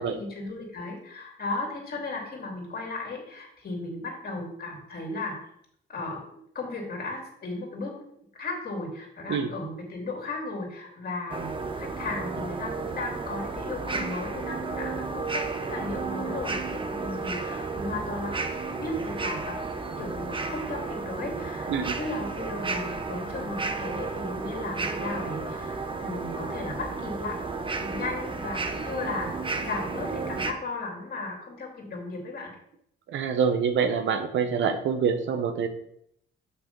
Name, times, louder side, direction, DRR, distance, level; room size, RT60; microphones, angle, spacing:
voice 1, 0.0-5.3 5.9-6.2 6.5-7.9 8.4-19.6 20.0-27.4 27.8-29.3 29.6-32.5, left 2 dB, 50° left, 0 dB, 2.8 m, -35 dB
sound 1, 11.3-30.5, right 4 dB, 25° right, 0.9 m, -33 dB
voice 2, 33.1-35.7, right 6 dB, 70° right, 7 dB, 0.9 m, -26 dB
6.2 x 5.8 x 5.2 m, 0.70 s
cardioid pair, 90°, 20 cm